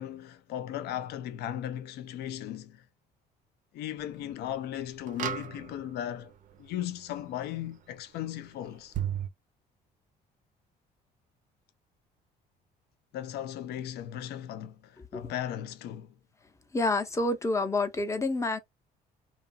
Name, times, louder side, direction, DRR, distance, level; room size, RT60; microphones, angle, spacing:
voice 1, 0.0-2.8 3.7-6.3 6.6-8.9 13.1-16.1, left 11 dB, 75° left, 0.5 m, -37 dB
sound 1, 4.0-4.1 5.1-6.1 8.9-9.3, right 10 dB, 50° right, 0.5 m, -33 dB
voice 2, 16.7-18.6, left 2 dB, 15° left, 0.6 m, -28 dB
2.8 x 2.4 x 2.2 m
cardioid pair, 110°, 17 cm